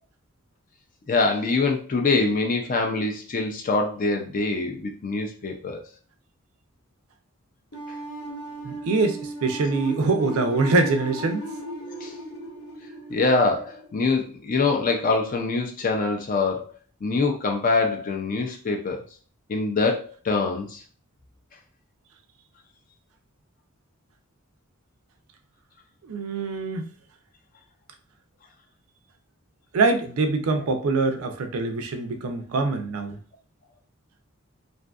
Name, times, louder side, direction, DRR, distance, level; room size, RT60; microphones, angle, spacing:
voice 1, 1.1-5.8 7.9-8.0 12.0-12.1 13.1-16.7 17.0-19.0 19.5-20.8, left 3 dB, 40° left, 0.4 m, -24 dB
sound 1, 7.7-14.6, right 1 dB, 65° left, 0.9 m, -37 dB
voice 2, 8.6-11.5 26.0-26.9 29.7-33.2, right 3 dB, 75° right, 0.4 m, -24 dB
2.6 x 2.4 x 2.3 m
head